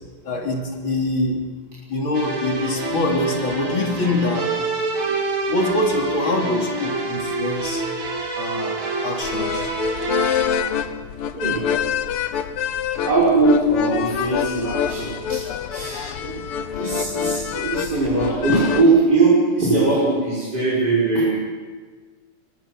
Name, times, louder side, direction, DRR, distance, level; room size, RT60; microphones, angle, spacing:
voice 1, 0.2-1.5 1.9-4.5 5.1-5.2 5.5-7.8 8.4-9.7, left 1 dB, 65° left, 1 dB, 4.0 m, -24 dB
sound 1, 2.1-10.5, right 2 dB, 65° right, 3.8 m, -27 dB
sound 2, 9.2-18.8, left 8 dB, 90° left, 1.9 m, -26 dB
voice 2, 13.0-15.4 15.7-21.3, right 3 dB, 45° right, -7 dB, 6.6 m, -20 dB
23.5 x 23.5 x 6.2 m, 1.5 s
omnidirectional pair, 2.4 m